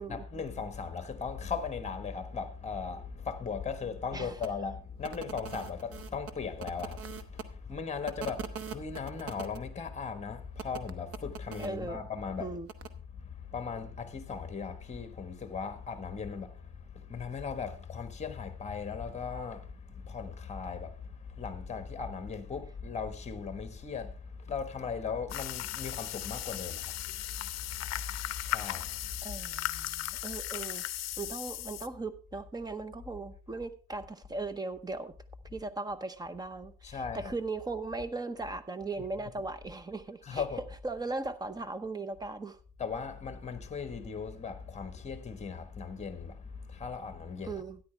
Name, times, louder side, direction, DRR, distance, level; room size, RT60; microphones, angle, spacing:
voice 1, 0.0-12.6 13.1-29.4 36.8-37.3 39.2-39.3 40.2-40.6 42.8-47.6, left 5 dB, 20° left, 1.3 m, -38 dB
sound 1, 4.4-4.5 5.0-7.4 8.0-9.6 10.6-11.7 12.7-12.9, right 7 dB, 40° right, 0.9 m, -42 dB
voice 2, 11.6-12.0 12.4-12.7 29.2-30.8 31.2-35.1 35.5-40.4 40.8-42.6 47.4-47.8, right 3 dB, 10° right, 0.7 m, -38 dB
sound 2, 25.3-31.9, left 14 dB, 50° left, 0.7 m, -37 dB
13.0 x 10.0 x 3.3 m
cardioid pair, 130°, 34 cm